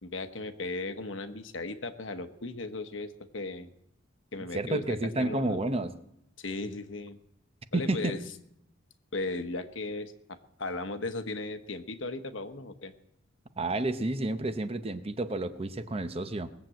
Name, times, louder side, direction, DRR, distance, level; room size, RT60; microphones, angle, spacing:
voice 1, 0.0-3.7 4.3-5.6 6.4-7.2 7.7-8.2 9.1-12.9, left 2 dB, 70° left, 9 dB, 1.1 m, -36 dB
voice 2, 4.5-5.9 7.7-8.2 13.6-16.5, right 2 dB, 30° right, 10 dB, 0.7 m, -30 dB
20.0 x 7.6 x 7.7 m, 0.78 s
head